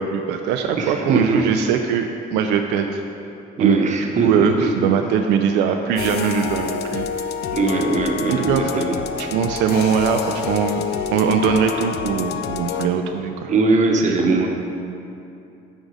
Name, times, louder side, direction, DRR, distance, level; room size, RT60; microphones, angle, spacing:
voice 1, 0.0-3.0 3.6-3.8 4.2-7.1 8.3-8.8 9.2-13.5 14.1-14.3, right 7 dB, 85° right, 4 dB, 0.4 m, -21 dB
voice 2, 0.8-1.5 3.6-4.8 7.5-9.0 13.5-14.5, right 3 dB, 45° right, 1 dB, 0.9 m, -20 dB
sound 1, 6.0-12.9, left 8 dB, 75° left, 0.4 m, -28 dB
9.0 x 3.9 x 4.8 m, 2.7 s
cardioid pair, 110°, 17 cm